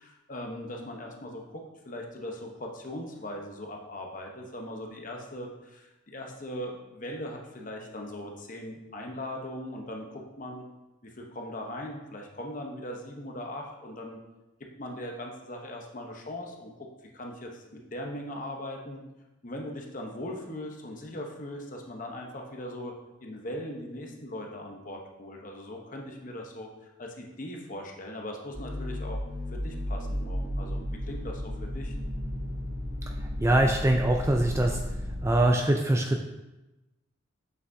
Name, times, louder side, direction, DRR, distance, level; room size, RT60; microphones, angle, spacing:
voice 1, 0.0-10.7 11.2-14.2 14.8-16.7 17.1-19.0 19.4-22.9 23.2-26.7 27.0-29.2 29.5-32.0, left 1 dB, 40° left, 1 dB, 0.9 m, -39 dB
sound 1, 28.5-35.4, left 1 dB, 75° right, 2.2 m, -34 dB
voice 2, 33.4-34.8 35.2-36.2, right 1 dB, 15° right, 2 dB, 0.3 m, -23 dB
8.1 x 5.8 x 2.7 m, 1.0 s
head